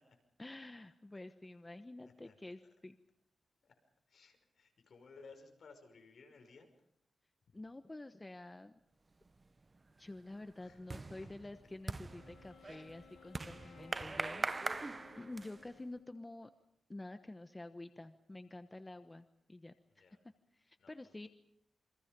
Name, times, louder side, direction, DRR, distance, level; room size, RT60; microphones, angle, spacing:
voice 1, 0.4-3.0 7.5-8.8 10.0-14.6 15.2-16.5 16.9-20.0 20.5-21.3, left 2 dB, 20° left, 9 dB, 1.1 m, -49 dB
voice 2, 4.1-6.7 10.6-10.8 12.6-12.9 13.6-13.8 14.6-14.9 20.0-20.2 20.8-21.3, left 4 dB, 65° left, 5 dB, 5.7 m, -59 dB
sound 1, 9.3-9.6 10.0-15.8, right 3 dB, 30° right, 1.0 m, -42 dB
Wind instrument woodwind instrument, 12.0-16.6, left 7 dB, 85° left, 2.2 m, -61 dB
28.5 x 24.5 x 5.4 m, 0.71 s
wide cardioid pair, 100°, 0 cm